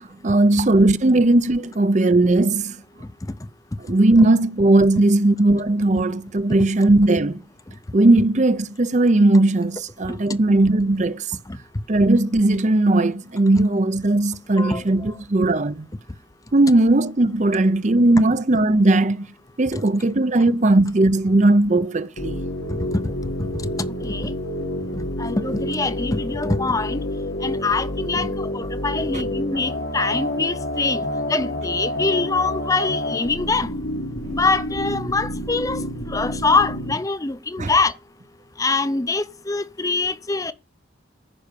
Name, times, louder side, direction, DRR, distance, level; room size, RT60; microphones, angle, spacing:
voice 1, 0.0-2.8 3.8-7.4 7.9-11.3 11.9-15.9 16.5-19.3 19.6-22.4 28.2-28.3 29.1-29.3 34.2-34.4 37.6-37.7, right 2 dB, 40° right, 0.6 m, -18 dB
voice 2, 14.6-15.1 22.7-22.8 23.6-24.3 25.2-27.0 27.4-33.7 34.3-35.8 36.1-37.9 38.6-40.5, left 3 dB, 20° left, 0.6 m, -24 dB
sound 1, 22.2-36.9, left 1 dB, 85° left, 2.0 m, -28 dB
14.0 x 5.6 x 6.8 m
head